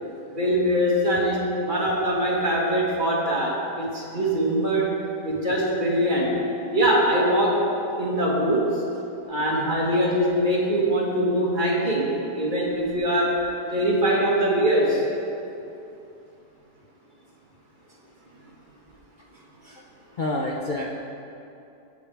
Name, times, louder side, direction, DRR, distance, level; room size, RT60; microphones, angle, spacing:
voice 1, 0.3-4.9 5.2-6.3 6.7-7.6 8.0-8.8 9.3-13.4 13.7-15.0, equal, 30° right, -4 dB, 1.7 m, -22 dB
voice 2, 20.2-21.0, left 2 dB, 85° left, -2 dB, 0.4 m, -28 dB
16.0 x 7.0 x 3.4 m, 2.7 s
omnidirectional pair, 1.7 m